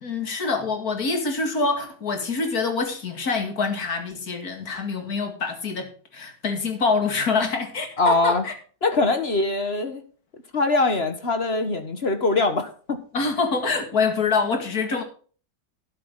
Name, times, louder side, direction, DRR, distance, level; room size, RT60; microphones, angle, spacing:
voice 1, 0.0-8.5 13.1-15.0, left 4 dB, 55° left, 2.6 m, -25 dB
voice 2, 8.0-8.4 8.8-10.0 10.5-13.0, left 2 dB, 35° left, 1.5 m, -22 dB
12.5 x 10.0 x 3.8 m
omnidirectional pair, 1.9 m